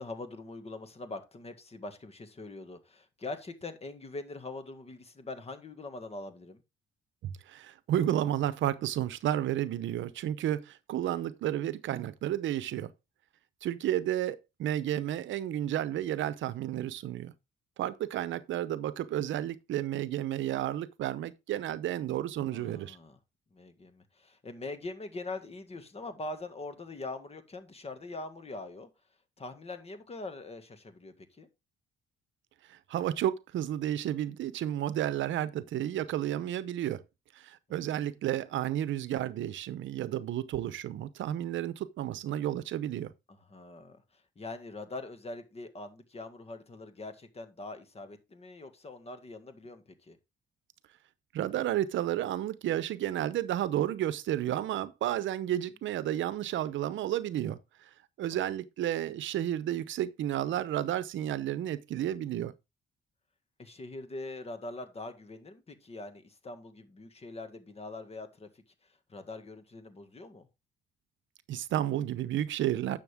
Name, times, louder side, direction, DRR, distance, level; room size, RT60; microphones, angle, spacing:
voice 1, 0.0-6.6 22.5-23.2 23.5-28.9 29.4-31.5 37.9-38.1 43.3-50.2 58.4-58.5 63.6-68.6 69.1-70.5, left 2 dB, 30° left, 1.8 m, -43 dB
voice 2, 7.5-12.9 13.6-17.3 17.8-23.0 32.9-37.0 37.4-43.1 51.3-57.6 58.2-62.5 71.5-73.0, right 12 dB, 75° right, 0.7 m, -32 dB
11.0 x 6.6 x 3.5 m
cardioid pair, 90°, 20 cm